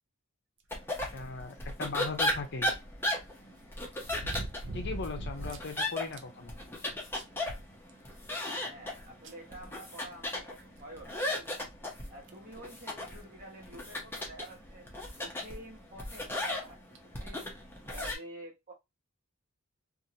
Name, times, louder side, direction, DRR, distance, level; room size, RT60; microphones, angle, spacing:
sound 1, 0.7-18.1, left 1 dB, 10° left, 0.8 m, -37 dB
voice 1, 1.1-2.7 4.7-6.6, left 3 dB, 55° left, 0.7 m, -38 dB
sound 2, 2.1-2.2 4.0-5.7 6.1-6.2 6.7-6.8 7.1-8.3 9.2-9.3 10.8-10.9 11.5-11.6 12.3-12.5 13.8-13.9 14.1-14.2 15.9-16.2 16.9-17.0, right 1 dB, 55° right, 0.6 m, -40 dB
voice 2, 8.6-11.7 12.1-14.9 15.2-17.6 17.9-18.7, right 1 dB, 40° right, 1.3 m, -49 dB
2.8 x 2.6 x 2.8 m
head